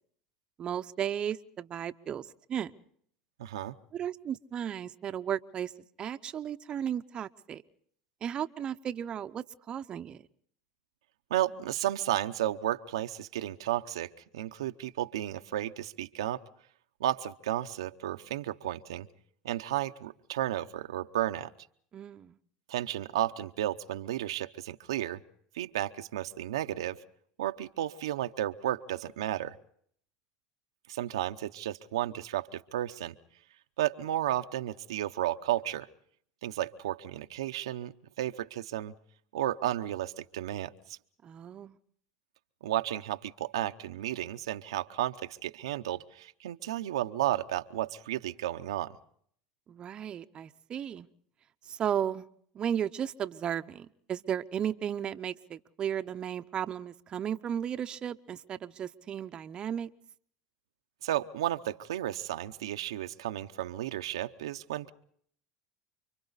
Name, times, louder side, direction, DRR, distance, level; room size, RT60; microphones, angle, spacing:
voice 1, 0.6-2.7 3.9-5.7 6.0-7.6 8.2-10.2 21.9-22.4 41.2-41.8 49.7-51.1 51.7-52.3 52.5-59.9, right 9 dB, 35° right, 9 dB, 0.8 m, -35 dB
voice 2, 3.4-3.8 11.3-16.4 17.0-19.1 19.4-21.5 22.7-25.2 25.5-27.0 27.4-29.5 30.9-33.1 33.8-35.9 36.4-38.9 39.3-41.0 42.6-49.0 61.0-64.9, right 13 dB, 90° right, 8 dB, 0.8 m, -33 dB
30.0 x 24.0 x 4.1 m, 0.63 s
supercardioid pair, 105°, 3 cm